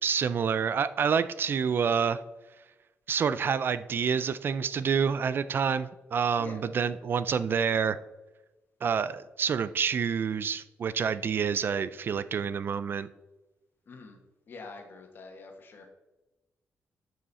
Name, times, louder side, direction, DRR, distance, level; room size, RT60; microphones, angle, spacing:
voice 1, 0.0-2.2 3.1-8.0 8.8-13.1, right 6 dB, 45° right, 14 dB, 0.4 m, -28 dB
voice 2, 13.9-14.2 14.5-15.9, left 3 dB, 45° left, 4 dB, 1.6 m, -45 dB
12.5 x 5.6 x 4.2 m, 1.1 s
wide cardioid pair, 145°, 5 cm